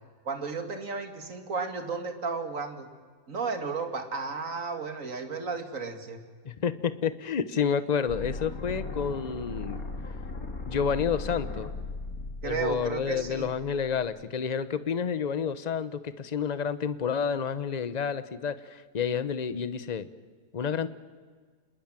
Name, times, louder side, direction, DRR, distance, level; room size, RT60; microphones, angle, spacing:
voice 1, 0.2-2.9 3.3-6.2 12.4-13.5, right 4 dB, 55° right, 7 dB, 2.6 m, -33 dB
voice 2, 6.4-9.8 10.7-11.7 12.4-20.1 20.5-20.9, left 6 dB, 30° left, 14 dB, 0.9 m, -29 dB
sound 1, 8.1-14.1, left 3 dB, 60° left, 3.3 m, -38 dB
27.5 x 20.5 x 9.1 m, 1.5 s
omnidirectional pair, 1.7 m